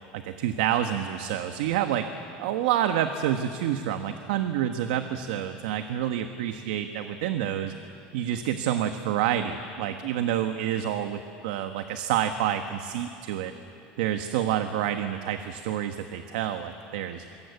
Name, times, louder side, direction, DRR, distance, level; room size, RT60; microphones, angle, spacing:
voice 1, 0.1-2.0 2.4-7.7 8.1-13.5 14.0-17.2, right 10 dB, 85° right, 7 dB, 1.3 m, -28 dB
26.5 x 23.5 x 8.3 m, 2.8 s
cardioid pair, 165°, 4 cm